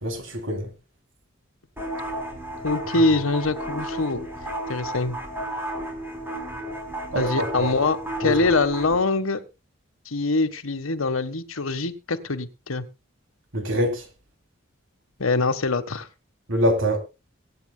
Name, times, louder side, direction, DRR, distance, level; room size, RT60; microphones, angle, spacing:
voice 1, 0.0-0.7 7.1-7.7 8.2-8.3 13.5-14.0 16.5-17.0, equal, 70° right, 3.1 m, -24 dB
sound 1, 1.8-9.0, right 1 dB, 10° right, 4.2 m, -33 dB
voice 2, 2.6-4.3 4.7-5.2 7.1-9.4 10.1-12.8 15.2-16.1, left 3 dB, 85° left, 1.4 m, -24 dB
23.5 x 9.0 x 2.3 m
head